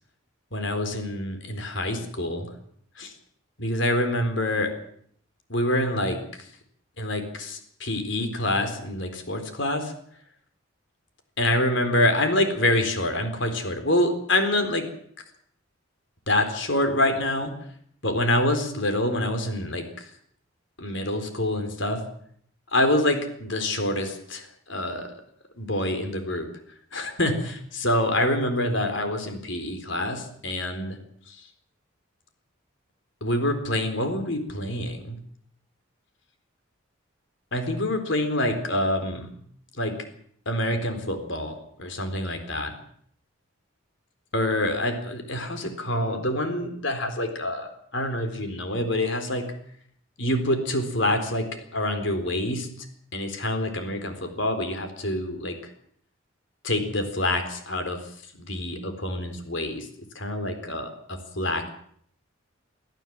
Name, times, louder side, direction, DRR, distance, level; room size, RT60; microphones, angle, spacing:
voice 1, 0.5-2.5 3.0-3.1 3.6-4.7 5.5-6.2 7.0-9.9 11.4-14.8 16.3-17.5 18.0-20.1 20.8-22.0 22.7-25.1 25.6-26.5 26.9-31.0 31.3-31.5 33.2-35.2 37.5-39.3 39.8-39.9 40.5-42.7 44.3-49.4 50.2-52.7 53.1-55.7 56.6-58.0 58.4-59.9 60.1-61.7, left 1 dB, 65° left, 7 dB, 4.1 m, -26 dB
24.5 x 15.0 x 7.7 m, 0.64 s
head